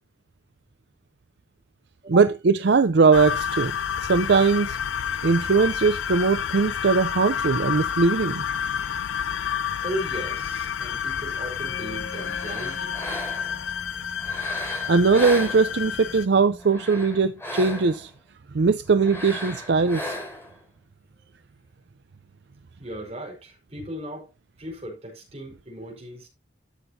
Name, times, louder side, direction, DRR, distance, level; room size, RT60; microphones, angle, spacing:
voice 1, 2.1-3.7 4.0-4.8 5.2-8.4 8.9-9.0 14.9-18.1 18.5-20.2, right 4 dB, 60° right, 0.5 m, -20 dB
sound 1, 3.1-16.3, left 8 dB, 90° left, 0.5 m, -30 dB
voice 2, 9.8-13.0 22.8-24.3 24.6-26.3, right 1 dB, 30° right, 5.0 m, -36 dB
Wind instrument woodwind instrument, 11.5-17.2, left 1 dB, 70° left, 4.0 m, -45 dB
sound 2, 12.1-13.6 14.2-16.1 16.6-18.1 19.0-20.5, left 1 dB, 10° left, 4.4 m, -35 dB
12.5 x 8.1 x 2.7 m
head